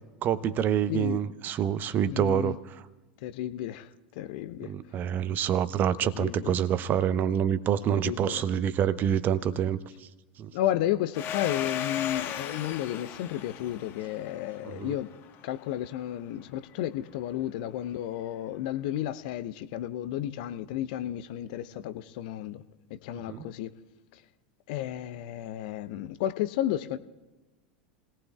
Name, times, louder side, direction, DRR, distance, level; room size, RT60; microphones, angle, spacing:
voice 1, 0.2-2.5 4.6-10.1 10.4-10.5 14.6-15.0 23.3-23.5, right 9 dB, 35° right, 15 dB, 0.8 m, -27 dB
voice 2, 0.9-1.2 2.1-2.6 3.2-3.9 4.2-4.7 6.0-6.5 7.9-8.4 10.5-15.1 15.4-22.6 22.9-23.7 24.7-27.0, left 12 dB, 55° left, 12 dB, 0.8 m, -32 dB
Domestic sounds home sounds, 11.1-15.6, left 9 dB, 40° left, 1.3 m, -36 dB
29.5 x 18.0 x 2.4 m, 1.1 s
figure-of-eight pair, 85°, 5 cm